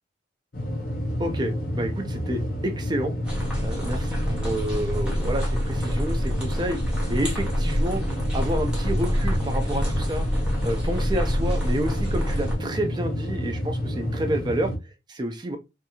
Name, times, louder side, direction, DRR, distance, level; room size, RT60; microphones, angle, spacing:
sound 1, 0.5-14.8, equal, 45° left, 0.6 m, -30 dB
voice 1, 1.2-3.1 3.6-6.8 7.1-8.0 8.3-10.3 10.6-14.7 15.1-15.6, right 1 dB, 20° right, 0.3 m, -29 dB
sound 2, 3.2-12.5, equal, 5° right, 0.7 m, -27 dB
2.5 x 2.3 x 2.8 m
head